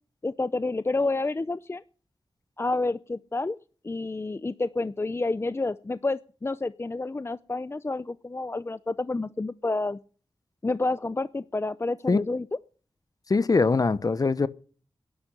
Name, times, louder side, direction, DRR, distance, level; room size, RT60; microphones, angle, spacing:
voice 1, 0.2-1.8 2.6-3.6 3.8-10.0 10.6-12.5, left 2 dB, 30° left, 0.6 m, -29 dB
voice 2, 13.3-14.5, left 4 dB, 50° left, 1.1 m, -22 dB
11.5 x 11.0 x 9.8 m
cardioid pair, 60°, 8 cm